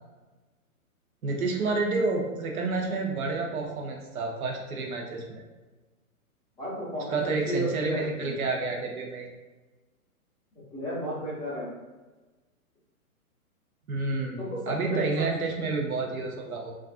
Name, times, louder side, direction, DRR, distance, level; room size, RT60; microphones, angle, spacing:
voice 1, 1.2-5.4 7.1-9.3 13.9-16.7, right 3 dB, 70° right, 1 dB, 0.7 m, -29 dB
voice 2, 6.6-8.3 10.5-11.7 14.4-15.2, equal, 10° left, -9 dB, 0.6 m, -33 dB
2.4 x 2.4 x 2.4 m, 1.2 s
hypercardioid pair, 125°, 44 cm